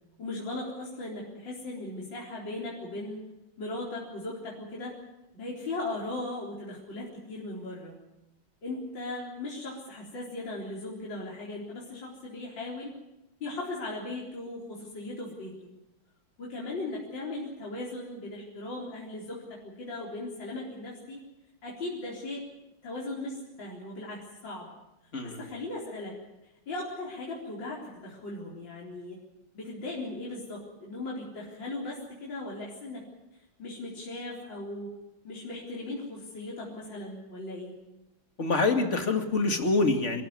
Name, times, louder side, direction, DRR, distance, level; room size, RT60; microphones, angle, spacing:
voice 1, 0.2-3.3 3.6-5.0 5.3-8.0 8.6-12.9 13.4-15.5 16.4-21.2 21.6-22.4 22.8-24.7 25.2-26.2 26.7-29.2 29.5-33.1 33.6-34.9 35.2-37.7, left 2 dB, 60° left, -5 dB, 4.8 m, -38 dB
voice 2, 25.1-25.4 38.4-40.2, left 3 dB, 35° left, 5 dB, 2.5 m, -26 dB
26.5 x 14.0 x 9.7 m, 0.97 s
omnidirectional pair, 2.2 m